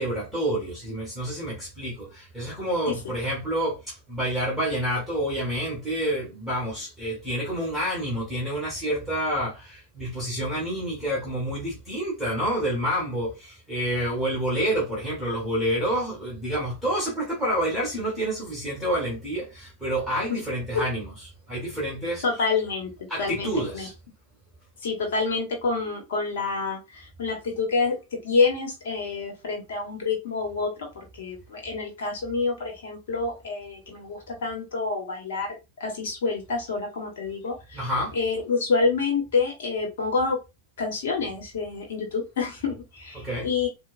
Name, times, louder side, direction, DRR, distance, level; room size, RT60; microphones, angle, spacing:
voice 1, 0.0-21.1 21.5-22.2 23.1-23.9 37.7-38.2 43.1-43.5, right 1 dB, ahead, 1.6 m, -28 dB
voice 2, 22.2-22.9 23.2-23.9 24.8-37.8 38.1-40.4 40.8-43.7, left 4 dB, 60° left, 1.0 m, -27 dB
4.4 x 2.1 x 2.5 m
figure-of-eight pair, 90°, 0 cm